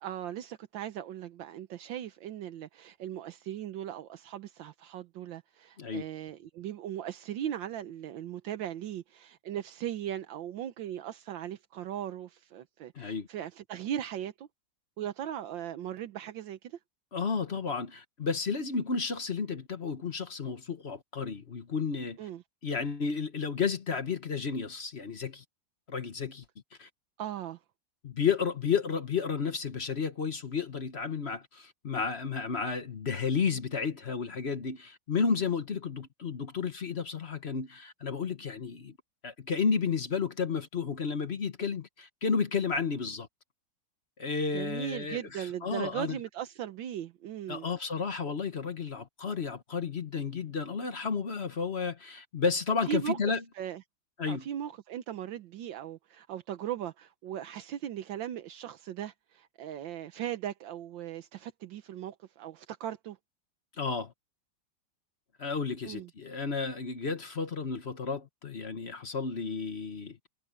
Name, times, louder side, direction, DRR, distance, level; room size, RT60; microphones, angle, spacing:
voice 1, 0.0-14.5 15.0-16.8 22.2-22.4 27.2-27.6 44.5-47.7 52.9-53.2 53.6-53.8 54.3-63.2 65.8-66.1, right 11 dB, 80° right, 1.6 m, -38 dB
voice 2, 12.9-13.3 17.1-22.3 22.6-25.4 25.9-26.4 26.8-26.9 28.0-39.0 39.2-43.3 44.2-46.2 47.5-53.4 54.2-54.5 63.8-64.1 65.4-70.2, left 5 dB, 40° left, 1.2 m, -32 dB
omnidirectional pair, 2.0 m